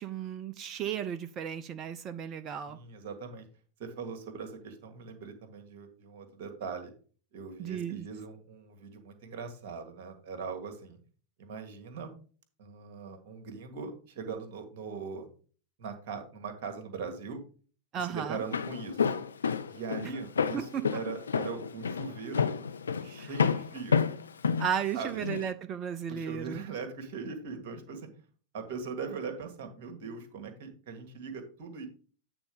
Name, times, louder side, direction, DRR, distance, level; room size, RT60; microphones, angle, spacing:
voice 1, 0.0-2.8 7.6-8.1 17.9-18.4 20.5-20.8 23.2-23.3 24.6-26.6, right 8 dB, 30° right, 10 dB, 0.4 m, -34 dB
voice 2, 2.7-3.5 3.8-6.9 7.3-11.0 11.4-12.2 12.6-15.3 15.8-17.4 17.9-19.0 19.7-22.5 23.0-24.0 24.9-25.2 26.1-28.1 28.5-31.9, right 5 dB, 50° right, 6 dB, 1.7 m, -40 dB
Walk footsteps, 18.3-25.5, left 6 dB, 70° left, 0.5 m, -30 dB
9.0 x 3.8 x 5.1 m, 0.41 s
figure-of-eight pair, 90°, 0 cm